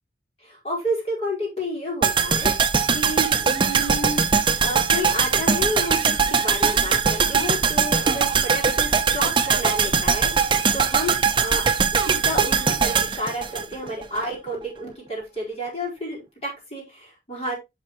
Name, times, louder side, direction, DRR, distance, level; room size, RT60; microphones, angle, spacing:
voice 1, 0.4-11.6 12.0-17.5, equal, 35° left, -3 dB, 4.2 m, -31 dB
sound 1, 2.0-14.2 14.5-14.6, right 6 dB, 25° right, 0.7 m, -21 dB
10.5 x 5.4 x 3.0 m, 0.22 s
head